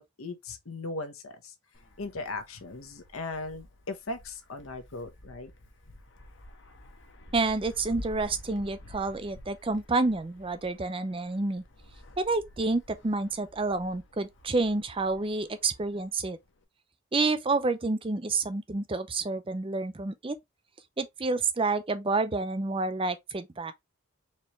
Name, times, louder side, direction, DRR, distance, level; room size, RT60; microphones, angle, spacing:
voice 1, 0.0-1.5 2.0-5.5, left 3 dB, 90° left, 1.1 m, -38 dB
Wind, 1.7-16.6, left 1 dB, 60° left, 0.9 m, -50 dB
voice 2, 7.3-11.6 12.2-16.4 17.1-20.4 21.0-23.7, right 3 dB, 25° right, 0.5 m, -29 dB
4.4 x 3.2 x 3.0 m
head